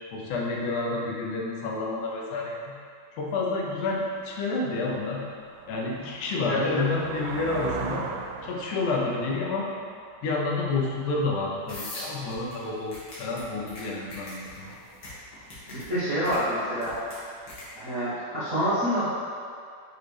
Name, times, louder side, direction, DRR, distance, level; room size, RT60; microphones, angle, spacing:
voice 1, 0.1-2.8 3.1-5.3 5.7-8.1 8.4-9.7 10.2-14.7, left 3 dB, 75° left, -2 dB, 2.3 m, -29 dB
sound 1, 3.9-4.0 4.5-11.1, right 5 dB, 85° right, 2.1 m, -40 dB
voice 2, 6.5-6.8 15.7-17.1 17.7-19.1, equal, 55° right, -14 dB, 0.9 m, -27 dB
sound 2, 11.7-17.7, left 1 dB, 40° left, 1.8 m, -42 dB
7.3 x 4.6 x 3.4 m, 2.3 s
omnidirectional pair, 3.7 m